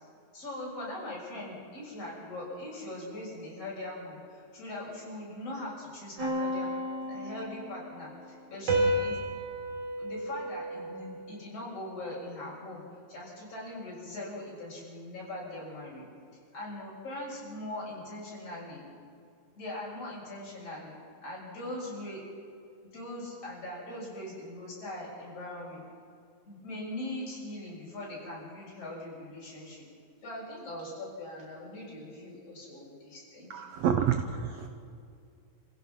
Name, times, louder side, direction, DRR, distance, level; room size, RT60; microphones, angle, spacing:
voice 1, 0.3-6.7 7.0-9.2 10.0-12.8 13.1-16.0 16.5-18.9 19.6-20.9 21.2-22.2 22.8-25.8 26.5-29.9 30.2-33.7, left 1 dB, 40° left, -5 dB, 8.1 m, -41 dB
sound 1, 6.2-8.0 8.7-11.3, right 1 dB, 45° right, 4.0 m, -32 dB
voice 2, 33.5-34.7, right 8 dB, 75° right, 7 dB, 1.5 m, -28 dB
29.5 x 16.0 x 6.0 m, 2.5 s
omnidirectional pair, 4.1 m